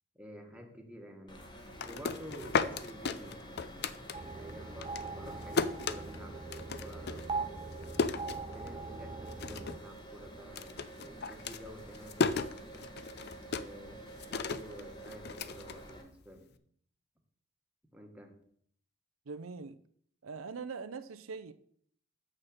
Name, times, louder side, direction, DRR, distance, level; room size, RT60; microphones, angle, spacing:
voice 1, 0.1-1.5 1.8-3.9 4.4-6.4 6.8-7.6 8.3-12.9 13.5-16.6 17.9-18.4, equal, 5° right, 1.5 m, -50 dB
sound 1, 1.3-16.0, right 1 dB, 20° left, 1.3 m, -50 dB
sound 2, 1.6-4.5 4.8-9.0 9.3-9.9 10.1-16.4, left 4 dB, 55° left, 0.5 m, -35 dB
sound 3, 4.1-9.8, right 4 dB, 25° right, 0.4 m, -41 dB
voice 2, 19.3-19.8 20.2-21.5, right 4 dB, 85° right, 0.6 m, -42 dB
7.3 x 6.5 x 6.6 m
head